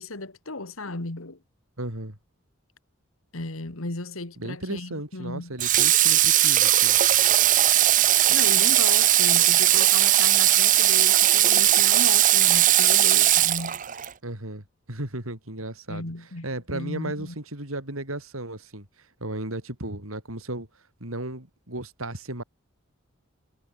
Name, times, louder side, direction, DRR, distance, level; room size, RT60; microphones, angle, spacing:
voice 1, 0.0-1.4 3.3-5.6 8.3-13.8 15.9-16.5 16.7-17.4, left 2 dB, 85° left, 2.1 m, -35 dB
voice 2, 1.8-2.2 4.4-7.0 14.2-16.0 16.4-18.9 19.2-20.7 21.0-22.4, right 1 dB, 90° right, 6.0 m, -35 dB
Water / Water tap faucet, 5.6-14.1, right 13 dB, 40° right, 0.6 m, -19 dB
head